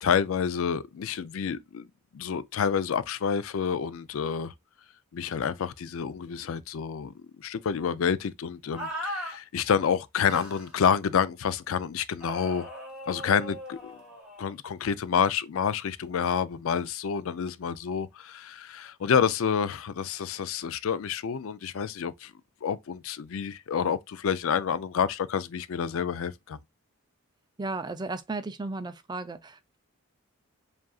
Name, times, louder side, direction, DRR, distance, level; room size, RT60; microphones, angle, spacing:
voice 1, 0.0-1.9 2.1-4.5 5.1-12.7 13.1-14.0 14.4-22.3 22.6-26.6, left 7 dB, 70° left, 0.4 m, -28 dB
sound 1, 8.8-9.4 10.2-10.7 12.2-14.5, equal, 5° right, 1.7 m, -38 dB
voice 2, 27.6-29.8, right 3 dB, 20° right, 0.4 m, -35 dB
7.4 x 2.5 x 2.3 m
head